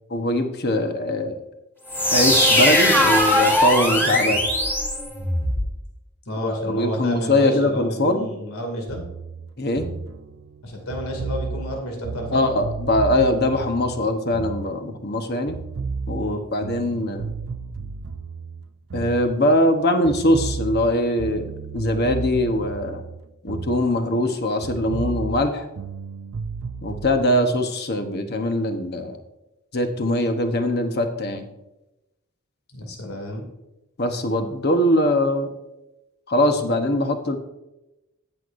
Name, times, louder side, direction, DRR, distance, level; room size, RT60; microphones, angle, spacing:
voice 1, 0.1-1.4 2.1-4.4 6.4-8.3 9.6-9.9 12.3-15.6 16.1-17.3 18.9-23.0 23.4-25.7 26.8-29.2 29.7-31.5 34.0-35.5 36.3-37.4, left 1 dB, 45° left, 6 dB, 1.0 m, -22 dB
sound 1, 1.9-5.7, left 1 dB, 10° left, 2.0 m, -19 dB
voice 2, 6.3-9.1 10.6-12.4 16.2-16.4 32.7-33.5, equal, 90° left, 2 dB, 2.4 m, -31 dB
sound 2, 8.9-15.2 15.5-19.8 20.0-24.3 24.6-27.2, right 4 dB, 80° right, 0.5 m, -33 dB
18.0 x 6.3 x 2.6 m, 0.95 s
head